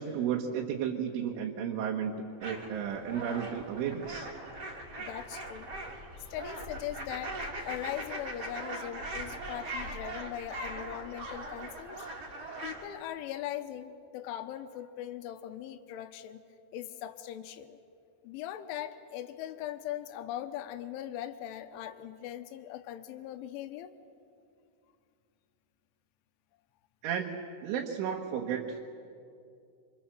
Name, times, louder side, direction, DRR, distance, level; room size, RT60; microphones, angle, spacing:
voice 1, 0.0-2.2 2.4-4.3 27.0-28.9, right 8 dB, 80° right, 0 dB, 3.8 m, -33 dB
sound 1, 2.4-12.9, right 2 dB, 35° right, 3.6 m, -40 dB
voice 2, 5.0-5.7 6.3-7.4 7.7-12.1 12.6-16.4 16.7-17.8 18.2-23.9, left 12 dB, 80° left, 9 dB, 3.4 m, -40 dB
27.5 x 26.0 x 7.5 m, 2.5 s
omnidirectional pair, 5.6 m